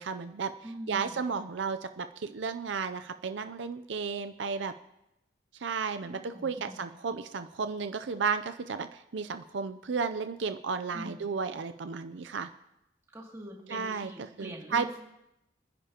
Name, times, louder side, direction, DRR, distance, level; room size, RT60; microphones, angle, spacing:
voice 1, 0.0-4.7 5.6-12.5 13.7-15.0, right 5 dB, 75° right, 10 dB, 0.5 m, -33 dB
voice 2, 0.6-1.2 6.0-6.9 10.9-11.3 13.1-15.0, right 1 dB, 15° right, -2 dB, 2.4 m, -44 dB
27.5 x 10.0 x 2.9 m, 0.87 s
head